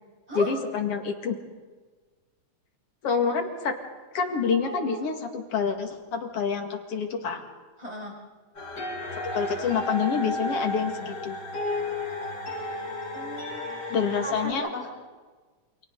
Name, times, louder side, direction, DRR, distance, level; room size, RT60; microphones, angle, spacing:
voice 1, 0.3-1.4 3.0-3.7 4.1-7.5 9.3-11.4 13.9-14.7, left 6 dB, 55° left, 4 dB, 3.0 m, -27 dB
voice 2, 4.6-5.0 7.8-8.1 13.1-13.9 14.2-14.9, right 1 dB, 10° right, -2 dB, 6.8 m, -36 dB
sound 1, 8.5-14.5, left 2 dB, 35° left, 3.7 m, -33 dB
29.5 x 27.5 x 4.1 m, 1.4 s
omnidirectional pair, 3.4 m